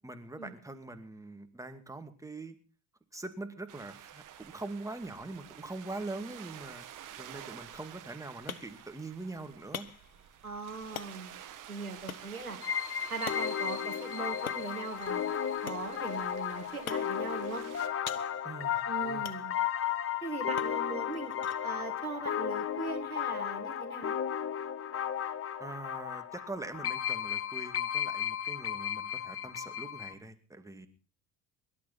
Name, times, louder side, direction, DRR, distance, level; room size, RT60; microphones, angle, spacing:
voice 1, 0.0-2.5 3.1-6.8 7.2-9.9 18.4-19.3 25.6-30.9, right 2 dB, 5° right, 6 dB, 2.4 m, -43 dB
sound 1, 3.7-17.9, right 11 dB, 45° right, 2.0 m, -50 dB
sound 2, 7.9-23.5, left 8 dB, 85° left, 0.9 m, -48 dB
voice 2, 10.4-11.3 11.7-12.6 13.1-15.2 15.6-17.6 18.9-19.5 20.2-21.3 21.6-24.1, right 3 dB, 90° right, 4 dB, 1.8 m, -40 dB
sound 3, 12.6-30.1, left 9 dB, 30° left, 1.3 m, -34 dB
24.0 x 12.0 x 4.2 m, 0.37 s
figure-of-eight pair, 55°, 42 cm